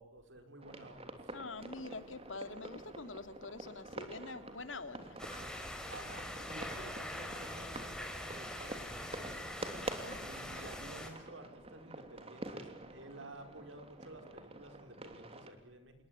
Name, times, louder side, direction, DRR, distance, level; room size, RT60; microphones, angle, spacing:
voice 1, 0.0-1.3 5.9-9.8 10.2-15.9, right 1 dB, 80° right, 7 dB, 5.0 m, -52 dB
sound 1, 0.6-15.5, right 2 dB, 30° right, 3.2 m, -48 dB
voice 2, 1.3-5.1 10.0-10.3, left 3 dB, 90° left, 10 dB, 2.5 m, -45 dB
sound 2, 5.2-11.1, left 1 dB, 5° left, 5.0 m, -43 dB
28.0 x 21.5 x 9.0 m, 0.80 s
head